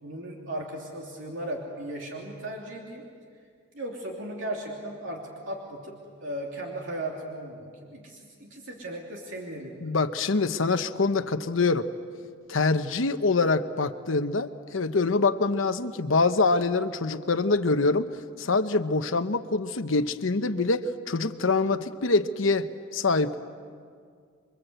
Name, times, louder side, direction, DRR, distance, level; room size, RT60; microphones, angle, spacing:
voice 1, 0.0-3.0 3.7-5.9 6.2-9.9, right 1 dB, 75° right, -1 dB, 3.1 m, -36 dB
voice 2, 9.8-11.9 12.5-18.1 18.4-23.4, left 3 dB, 80° left, 9 dB, 1.0 m, -25 dB
28.0 x 23.0 x 8.0 m, 2.1 s
head